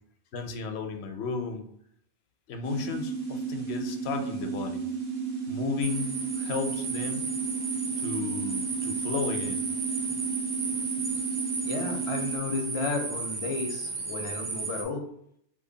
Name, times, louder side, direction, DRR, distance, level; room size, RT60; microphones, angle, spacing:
voice 1, 0.3-1.6 2.5-4.8 5.5-7.2 8.0-9.6, left 5 dB, 85° left, 5 dB, 0.8 m, -34 dB
sound 1, 2.6-12.4, right 5 dB, 70° right, 1.0 m, -33 dB
sound 2, 5.8-14.8, right 4 dB, 50° right, 0.7 m, -34 dB
voice 2, 11.6-15.1, left 4 dB, 45° left, 3 dB, 0.4 m, -33 dB
3.0 x 2.3 x 3.8 m, 0.70 s
omnidirectional pair, 1.1 m